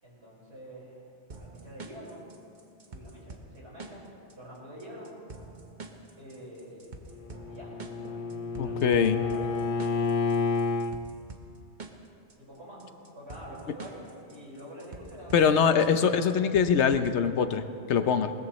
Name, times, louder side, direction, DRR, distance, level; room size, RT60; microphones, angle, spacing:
voice 1, 0.0-1.1 1.3-2.3 2.9-4.0 4.3-5.1 6.2-7.2 7.4-7.7 8.6-8.9 9.1-9.5 12.4-12.8 13.1-15.6, equal, 70° right, -6 dB, 5.4 m, -46 dB
sound 1, 1.3-17.3, right 3 dB, 45° right, 1.2 m, -47 dB
Bowed string instrument, 7.1-10.9, left 4 dB, 40° left, 0.6 m, -30 dB
voice 2, 8.6-9.2 15.3-18.3, left 7 dB, 80° left, 10 dB, 1.1 m, -23 dB
21.0 x 20.0 x 3.1 m, 2.5 s
omnidirectional pair, 1.1 m